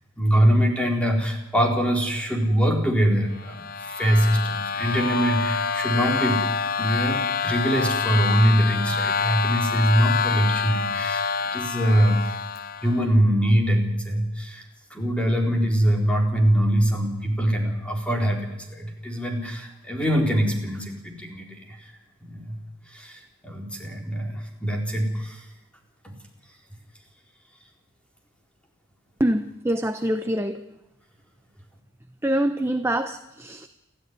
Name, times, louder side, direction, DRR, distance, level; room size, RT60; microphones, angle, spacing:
voice 1, 0.2-6.4 6.8-11.2 11.5-12.4 12.8-21.9 22.2-22.6 22.9-25.5 26.0-26.1, equal, 5° left, 1 dB, 4.1 m, -23 dB
sound 1, 3.4-13.0, left 6 dB, 45° left, 1.0 m, -27 dB
voice 2, 29.2-30.7 32.2-33.7, right 1 dB, 10° right, 8 dB, 0.7 m, -25 dB
29.0 x 13.5 x 9.6 m, 1.0 s
head